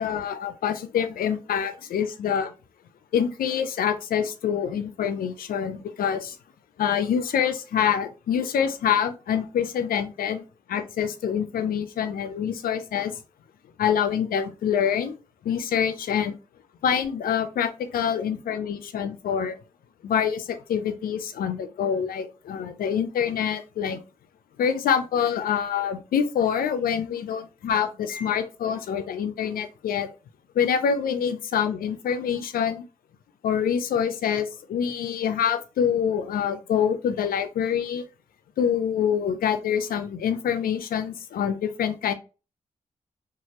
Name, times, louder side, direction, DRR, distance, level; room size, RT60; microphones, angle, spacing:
voice 1, 0.0-2.5 3.1-6.4 6.8-10.4 10.7-13.2 13.8-15.2 15.4-16.3 16.8-19.6 20.0-24.0 24.6-30.1 30.5-32.8 33.4-38.0 38.6-42.1, left 8 dB, 80° left, 9 dB, 0.4 m, -26 dB
2.7 x 2.4 x 3.0 m, 0.32 s
supercardioid pair, 40°, 15 cm